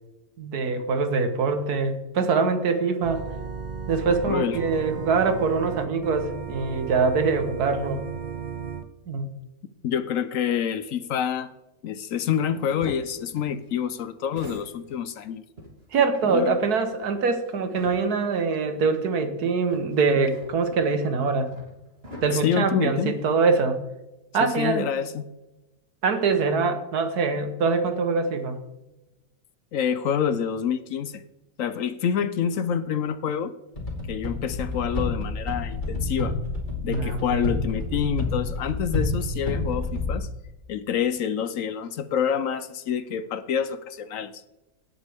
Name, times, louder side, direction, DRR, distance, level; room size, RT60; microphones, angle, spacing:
voice 1, 0.4-3.2 3.9-8.0 9.1-9.3 15.9-21.5 22.2-23.8 24.3-24.9 26.0-28.6 36.9-37.4, right 4 dB, 80° right, 7 dB, 1.7 m, -24 dB
Organ, 3.0-8.8, right 6 dB, 60° right, 0.4 m, -34 dB
voice 2, 4.3-4.6 9.8-11.5 11.8-15.4 16.2-16.6 22.3-23.1 24.4-25.3 29.7-31.2 31.6-33.5 34.1-36.4 36.8-40.3 40.7-44.4, left 8 dB, 65° left, 12 dB, 0.9 m, -27 dB
sound 1, 12.4-15.2 15.6-18.4 18.8-18.9 19.7-23.3, equal, 40° right, 3.1 m, -46 dB
sound 2, 33.8-40.2, left 2 dB, 30° left, 2.8 m, -29 dB
17.5 x 7.4 x 3.5 m, 0.99 s
omnidirectional pair, 1.6 m